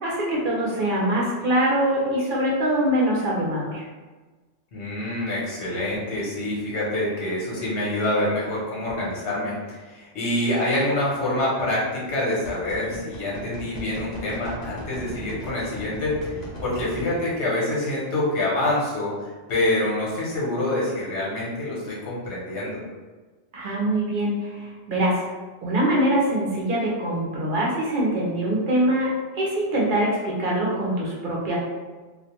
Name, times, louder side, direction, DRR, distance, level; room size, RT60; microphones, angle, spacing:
voice 1, 0.0-3.8 23.5-25.1 25.6-31.6, right 1 dB, 55° right, -4 dB, 0.7 m, -23 dB
voice 2, 4.7-22.8, left 1 dB, 70° left, -6 dB, 1.1 m, -26 dB
sound 1, 8.9-9.0 11.4-11.6 12.1-17.2, left 1 dB, 40° left, 0.7 m, -37 dB
2.4 x 2.1 x 2.8 m, 1.3 s
omnidirectional pair, 1.2 m